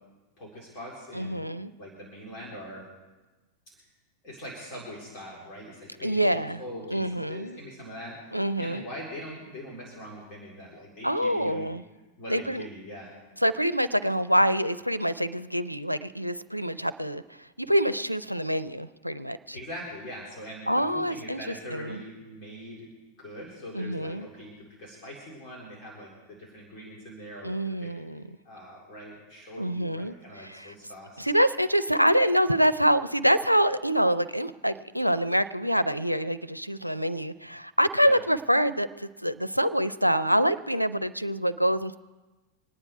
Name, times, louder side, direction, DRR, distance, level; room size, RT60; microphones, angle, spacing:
voice 1, 0.4-1.5 1.8-2.9 4.2-11.7 12.2-13.2 19.5-22.9 23.2-27.9 28.4-31.3 38.0-38.2, equal, 40° left, -4 dB, 4.2 m, -42 dB
voice 2, 1.1-1.7 6.0-6.6 6.9-7.6 8.3-8.8 11.0-11.8 12.3-12.7 13.4-17.2 17.6-19.6 20.7-21.4 21.7-22.0 23.7-24.3 27.4-28.4 29.6-30.7 31.2-42.0, equal, 90° right, 13 dB, 0.5 m, -26 dB
25.5 x 9.9 x 4.7 m, 1.2 s
figure-of-eight pair, 90°, 0 cm